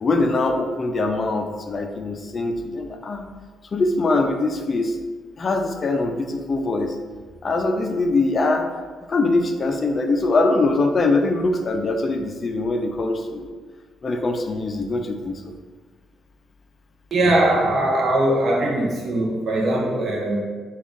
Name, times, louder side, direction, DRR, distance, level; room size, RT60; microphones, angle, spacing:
voice 1, 0.0-3.3 3.7-5.0 5.4-7.0 7.4-8.7 9.1-13.5 14.0-15.3, left 2 dB, 40° left, 5 dB, 0.4 m, -22 dB
voice 2, 17.1-20.4, right 1 dB, 50° right, -2 dB, 0.6 m, -20 dB
3.6 x 2.3 x 3.5 m, 1.4 s
cardioid pair, 90°, 0 cm